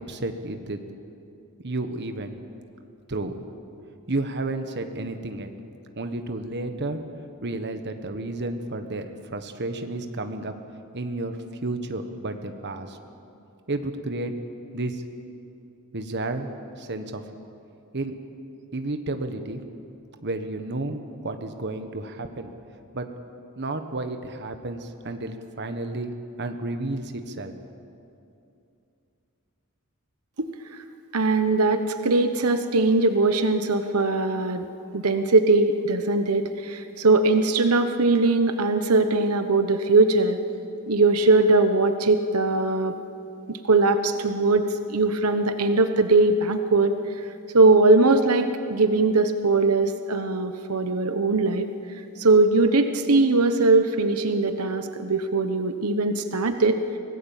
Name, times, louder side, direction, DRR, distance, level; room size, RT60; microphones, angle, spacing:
voice 1, 0.1-0.8 1.6-2.4 3.1-5.5 6.0-7.0 7.4-10.5 10.9-13.0 13.7-14.4 14.7-15.0 15.9-16.5 16.8-17.2 17.9-18.2 18.7-19.6 20.2-22.5 22.9-23.1 23.6-27.5, right 2 dB, 50° right, 7 dB, 1.3 m, -31 dB
voice 2, 31.1-34.7 34.9-40.4 40.9-42.9 43.5-44.6 44.9-47.3 47.5-51.7 52.2-56.8, right 3 dB, 90° right, 8 dB, 1.0 m, -20 dB
25.0 x 18.0 x 7.4 m, 2.7 s
head